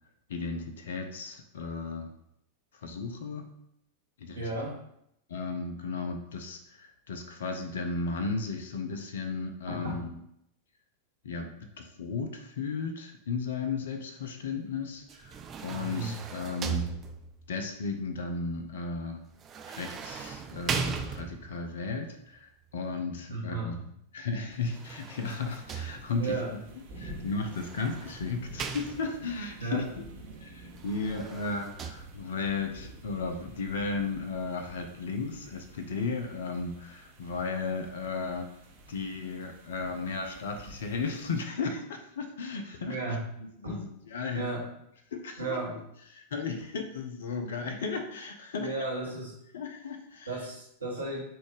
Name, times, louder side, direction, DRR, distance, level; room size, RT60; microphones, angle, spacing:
voice 1, 0.3-2.1 2.7-3.5 4.2-4.5 5.3-10.2 11.2-11.5 11.8-17.0 17.5-19.2 19.7-23.8 24.1-26.4 27.0-30.0 30.4-38.5 38.9-44.5 45.1-45.6 46.1-48.7 49.5-50.4, left 4 dB, 60° left, 5 dB, 0.4 m, -35 dB
voice 2, 4.3-4.8 9.7-10.0 15.8-16.1 23.3-23.7 26.2-26.5 29.6-29.9 42.8-43.3 43.6-43.8 44.3-44.7 45.4-45.8 48.6-49.3 50.3-51.2, right 2 dB, 75° right, -2 dB, 1.0 m, -34 dB
sound 1, 15.1-17.5 19.4-21.7 24.5-26.4 27.4-29.4 30.7-31.9, right 6 dB, 25° right, 0.3 m, -38 dB
sound 2, 25.4-41.4, right 1 dB, 50° right, 0.8 m, -50 dB
4.0 x 2.4 x 3.3 m, 0.76 s
figure-of-eight pair, 90°, 0 cm